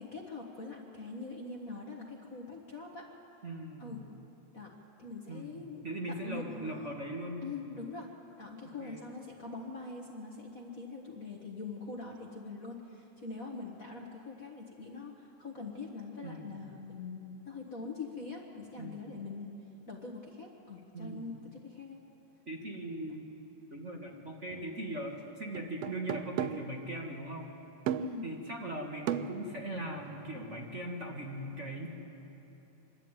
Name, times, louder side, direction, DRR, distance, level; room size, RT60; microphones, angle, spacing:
voice 1, 0.0-3.1 3.8-4.0 4.5-4.7 5.0-7.0 7.4-8.1 8.4-19.5 19.9-22.0 28.0-28.2, left 3 dB, 45° left, 0 dB, 1.1 m, -43 dB
voice 2, 3.4-4.0 5.3-7.7 8.8-9.0 16.2-16.7 18.8-19.1 20.9-21.3 22.4-23.3 23.7-27.5 28.2-31.9, right 1 dB, 30° right, -1 dB, 1.4 m, -40 dB
sound 1, 24.5-24.7 25.5-26.8 27.9-28.3 29.1-30.4, right 9 dB, 85° right, 1.4 m, -36 dB
25.0 x 12.0 x 8.9 m, 3.0 s
omnidirectional pair, 3.6 m